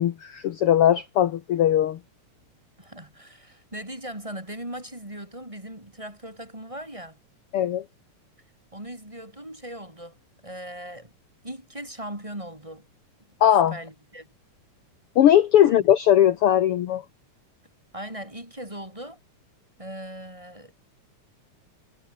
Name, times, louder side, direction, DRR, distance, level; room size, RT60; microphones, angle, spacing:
voice 1, 0.0-2.0 7.5-7.9 13.4-13.8 15.2-17.0, left 11 dB, 60° left, 1.7 m, -19 dB
voice 2, 2.8-7.2 8.7-10.2 10.4-11.1 11.4-12.8 13.7-14.3 15.7-15.8 17.9-19.2 19.8-20.7, right 1 dB, 10° right, 4.3 m, -39 dB
omnidirectional pair, 3.3 m